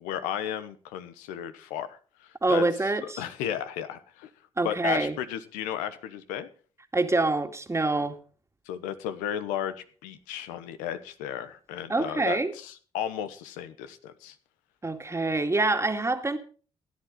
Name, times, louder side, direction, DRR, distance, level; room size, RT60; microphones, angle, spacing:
voice 1, 0.0-2.6 3.2-4.3 4.6-6.5 8.7-9.7 10.0-14.3, left 10 dB, 80° left, 11 dB, 1.1 m, -34 dB
voice 2, 2.4-3.2 4.6-5.2 6.9-8.2 11.9-12.5 14.8-16.4, right 2 dB, 20° right, 6 dB, 2.2 m, -26 dB
16.0 x 10.5 x 3.9 m, 0.38 s
hypercardioid pair, 45°, 13 cm